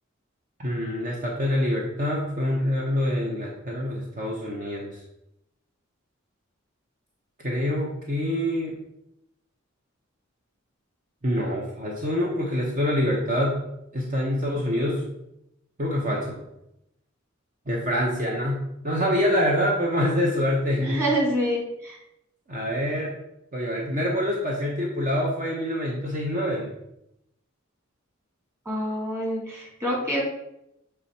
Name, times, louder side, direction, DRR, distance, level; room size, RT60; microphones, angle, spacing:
voice 1, 0.6-5.0 7.4-8.8 11.2-13.6 13.9-15.1 15.8-16.4 17.7-21.0 22.5-23.1 23.5-26.7, equal, 40° right, -2 dB, 0.9 m, -26 dB
voice 2, 20.8-22.0 28.7-30.2, equal, 15° right, -3 dB, 1.9 m, -26 dB
6.9 x 3.4 x 4.2 m, 0.82 s
head